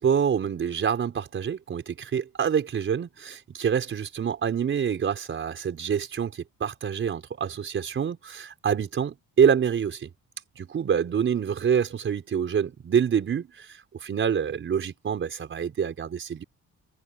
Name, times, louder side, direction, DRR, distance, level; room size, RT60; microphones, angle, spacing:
voice 1, 0.0-10.1 10.7-13.7 14.0-16.4, right 7 dB, 40° right, 4.8 m, -26 dB
cardioid pair, 175°, 30 cm